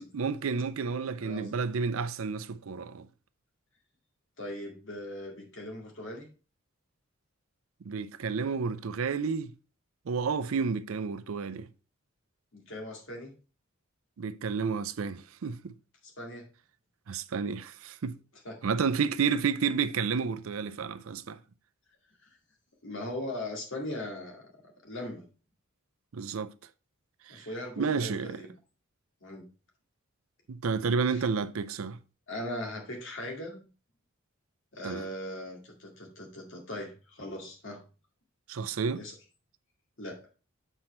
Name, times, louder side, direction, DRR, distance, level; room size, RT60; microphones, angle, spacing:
voice 1, 0.0-3.1 7.9-9.5 10.1-11.7 14.2-15.7 17.1-18.1 18.6-21.4 26.1-26.5 27.3-27.5 27.8-28.4 30.5-32.0 34.8-35.0 38.5-39.0, right 5 dB, 75° right, 0.5 m, -31 dB
voice 2, 1.2-1.6 4.4-6.3 12.5-13.3 16.2-16.5 18.4-18.5 18.9-19.0 22.2-22.4 22.8-24.5 24.8-25.3 27.3-28.6 29.2-29.4 31.1-31.3 32.3-33.7 34.7-37.8 38.9-39.2 40.0-40.2, left 1 dB, 60° left, 2.1 m, -39 dB
7.7 x 4.5 x 4.2 m
head